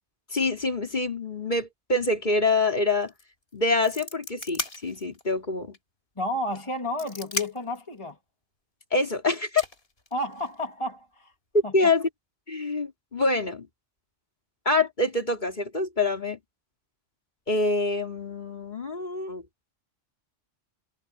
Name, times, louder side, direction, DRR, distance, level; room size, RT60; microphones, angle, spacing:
voice 1, 0.3-3.1 3.5-5.8 8.9-9.6 11.7-12.1 12.5-13.7 14.6-16.4 17.5-19.4, left 3 dB, 40° left, 3.2 m, -26 dB
sound 1, 3.0-3.2 3.5-5.3 5.7-5.8 6.6-7.8 9.0-9.1 9.6-10.6, left 2 dB, 60° left, 3.5 m, -36 dB
voice 2, 6.2-8.2 10.1-11.3 11.6-11.7, left 1 dB, 25° left, 2.4 m, -31 dB
omnidirectional pair, 1.2 m